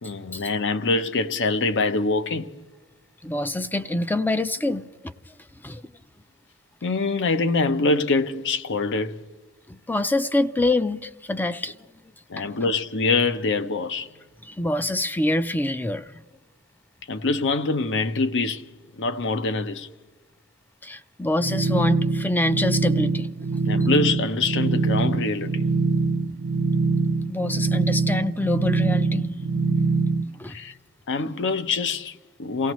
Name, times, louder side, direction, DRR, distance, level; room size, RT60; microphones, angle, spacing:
voice 1, 0.0-2.5 6.8-9.2 12.3-14.1 17.1-18.6 19.0-19.9 23.7-25.6 30.5-30.7 31.1-32.7, left 3 dB, 55° left, 0.7 m, -24 dB
voice 2, 3.2-5.1 5.6-5.8 9.7-11.7 12.4-12.5 14.4-16.2 20.8-23.3 27.3-30.0 30.4-30.6, left 1 dB, 10° left, 0.4 m, -26 dB
sound 1, 21.4-30.2, right 4 dB, 55° right, 0.6 m, -23 dB
28.5 x 16.5 x 3.1 m
head